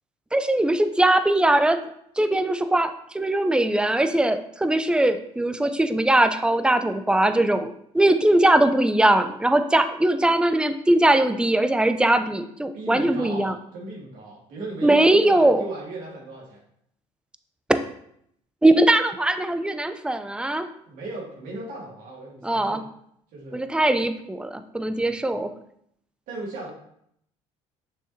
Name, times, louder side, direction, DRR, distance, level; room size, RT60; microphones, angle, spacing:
voice 1, 0.3-1.8 2.2-13.5 14.8-15.6 18.6-20.7 22.4-22.8 23.5-25.5, right 1 dB, 5° right, 9 dB, 0.6 m, -20 dB
voice 2, 12.7-16.6 20.9-22.8 23.3-23.6 25.0-25.1 26.3-26.7, right 2 dB, 65° right, -3 dB, 2.4 m, -36 dB
6.5 x 6.3 x 2.8 m, 0.71 s
hypercardioid pair, 65°, 15 cm